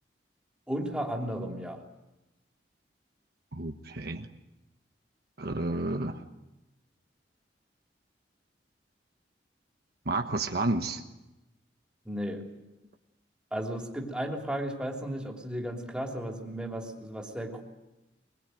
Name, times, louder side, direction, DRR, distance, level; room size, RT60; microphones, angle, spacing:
voice 1, 0.7-1.8 12.0-12.4 13.5-17.6, equal, 5° right, 0 dB, 3.2 m, -34 dB
voice 2, 3.5-4.3 5.4-6.2 10.0-11.0, right 2 dB, 60° right, 5 dB, 1.3 m, -31 dB
23.5 x 22.0 x 9.3 m, 1.0 s
head